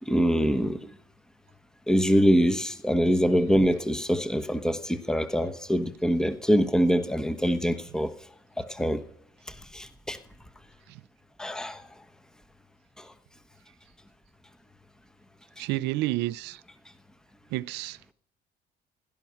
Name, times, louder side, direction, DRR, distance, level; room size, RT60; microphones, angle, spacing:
voice 1, 0.0-0.9 1.9-8.1 8.6-9.0 9.5-10.2 11.4-11.9 13.0-13.1, equal, 5° left, 1.2 m, -24 dB
voice 2, 15.6-16.6 17.5-18.1, right 17 dB, 85° right, 0.5 m, -30 dB
16.5 x 12.0 x 5.7 m
cardioid pair, 110°, 17 cm